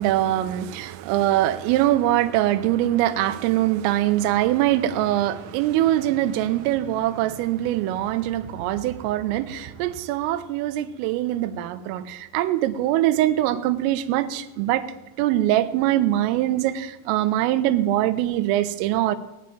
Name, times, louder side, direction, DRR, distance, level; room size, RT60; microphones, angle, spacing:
voice 1, 0.0-14.9 15.2-19.2, right 13 dB, 85° right, 3.4 m, -23 dB
19.0 x 7.6 x 8.5 m
omnidirectional pair, 5.8 m